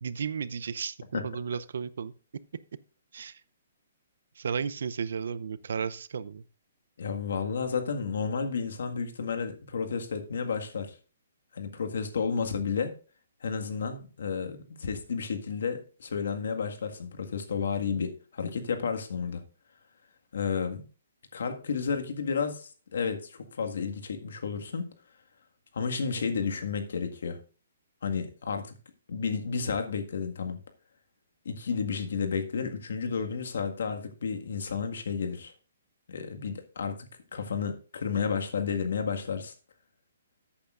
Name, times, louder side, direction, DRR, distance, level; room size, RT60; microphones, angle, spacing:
voice 1, 0.0-2.1 3.1-3.4 4.4-6.4, right 6 dB, 70° right, 16 dB, 0.6 m, -34 dB
voice 2, 7.0-11.0 11.5-12.9 13.4-19.4 20.3-20.8 21.3-24.9 25.7-27.4 28.0-28.8 29.1-30.6 31.5-35.5 36.1-39.5, left 5 dB, 75° left, 5 dB, 1.7 m, -32 dB
14.0 x 8.6 x 2.5 m, 0.36 s
hypercardioid pair, 150°, 0 cm